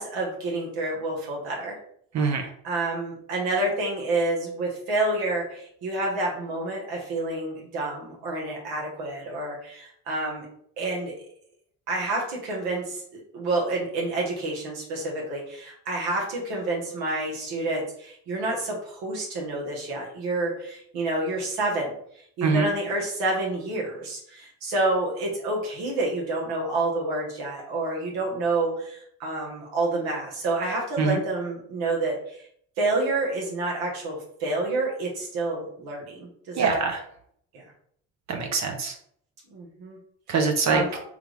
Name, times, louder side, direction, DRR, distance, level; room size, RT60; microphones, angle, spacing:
voice 1, 0.0-1.7 2.4-10.5 10.8-11.2 11.9-21.9 22.4-32.4 32.8-36.8 37.5-37.6 39.5-40.0 40.6-41.0, right 2 dB, 90° right, -2 dB, 1.1 m, -28 dB
voice 2, 2.1-2.5 22.4-22.7 31.0-31.2 36.6-37.0 38.3-38.9 40.3-41.0, right 5 dB, 50° right, 4 dB, 0.6 m, -24 dB
3.5 x 2.3 x 3.2 m, 0.65 s
supercardioid pair, 75°, 36 cm